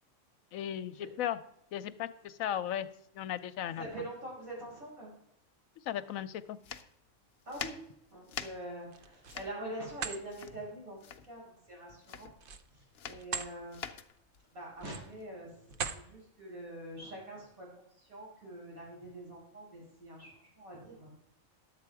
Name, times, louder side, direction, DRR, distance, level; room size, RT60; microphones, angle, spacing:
voice 1, 0.5-1.4 1.7-2.9 3.1-3.8 5.9-6.6, left 10 dB, 80° left, 13 dB, 1.0 m, -36 dB
voice 2, 3.7-5.1 7.5-7.8 8.1-12.3 12.7-13.8 14.5-15.5 15.9-21.2, right 1 dB, 90° right, -5 dB, 5.5 m, -45 dB
sound 1, 6.6-15.8, left 8 dB, 60° left, 0.8 m, -45 dB
sound 2, 8.8-9.4 9.9-10.2 12.3-13.5 14.0-14.2 14.7-15.2 15.7-16.1, right 6 dB, 50° right, 0.7 m, -39 dB
11.0 x 7.7 x 4.7 m, 0.77 s
omnidirectional pair, 1.4 m